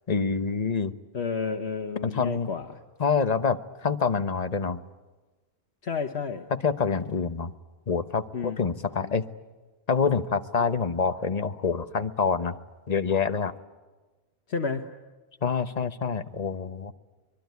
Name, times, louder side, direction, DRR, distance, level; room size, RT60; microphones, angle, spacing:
voice 1, 0.1-0.9 2.0-2.5 3.0-4.8 6.5-7.5 7.9-9.3 9.9-12.6 12.9-13.5 15.4-16.9, left 5 dB, 40° left, 11 dB, 1.1 m, -26 dB
voice 2, 1.1-2.7 5.8-6.5 8.3-8.6 9.0-9.1 14.5-14.8, left 5 dB, 80° left, 4 dB, 1.5 m, -31 dB
25.0 x 22.5 x 9.5 m, 1.2 s
omnidirectional pair, 1.1 m